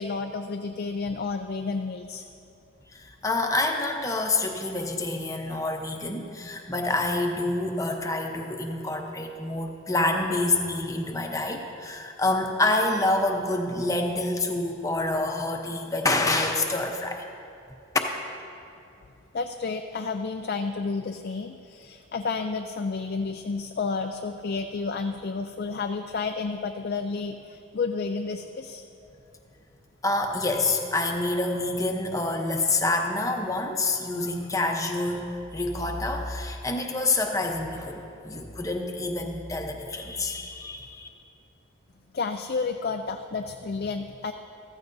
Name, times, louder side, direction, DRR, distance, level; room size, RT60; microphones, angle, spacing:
voice 1, 0.0-2.3 19.3-28.9 42.1-44.3, left 4 dB, 50° left, 6 dB, 0.4 m, -31 dB
voice 2, 2.9-17.3 30.0-41.1, left 2 dB, 15° left, 3 dB, 0.8 m, -27 dB
15.0 x 14.5 x 2.7 m, 2.7 s
head